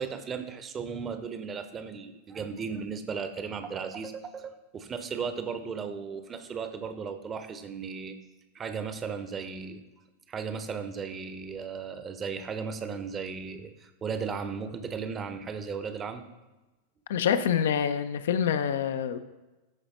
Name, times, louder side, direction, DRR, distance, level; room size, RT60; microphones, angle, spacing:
voice 1, 0.0-8.2 8.5-9.8 10.3-16.3, right 5 dB, 25° right, 9 dB, 0.9 m, -36 dB
voice 2, 17.1-19.2, left 8 dB, 60° left, 10 dB, 0.6 m, -26 dB
13.5 x 4.9 x 4.3 m, 1.1 s
figure-of-eight pair, 90°, 0 cm